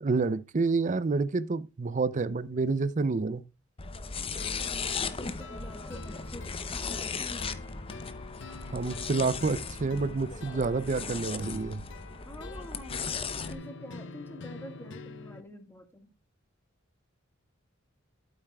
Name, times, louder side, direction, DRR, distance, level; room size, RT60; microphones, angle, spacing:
voice 1, 0.0-3.4 8.7-11.8, right 4 dB, 35° right, 0.5 m, -28 dB
sound 1, 3.8-13.5, left 5 dB, 25° left, 0.7 m, -37 dB
sound 2, 4.4-15.4, left 3 dB, 60° left, 0.8 m, -46 dB
voice 2, 4.5-7.6 12.3-13.2 13.5-16.1, equal, 10° left, 1.7 m, -47 dB
12.0 x 8.2 x 2.3 m
head